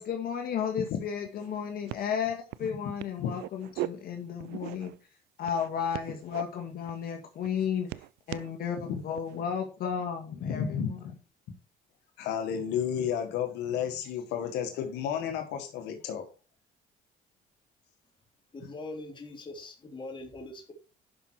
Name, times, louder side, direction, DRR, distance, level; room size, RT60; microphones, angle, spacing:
voice 1, 0.0-4.9 5.4-11.0, left 7 dB, 60° left, 2.1 m, -33 dB
sound 1, 0.9-1.0 1.2-1.6 1.9-2.1 2.5-2.7 3.0-3.9 4.4-5.0 5.5-6.4 6.9-7.1 7.4-8.5 9.1-9.4, right 18 dB, 90° right, 0.5 m, -39 dB
voice 2, 10.4-11.2 12.2-16.3, left 8 dB, 90° left, 1.9 m, -32 dB
voice 3, 18.5-20.7, left 2 dB, 30° left, 3.3 m, -42 dB
11.0 x 5.7 x 4.7 m
cardioid pair, 110°, 17 cm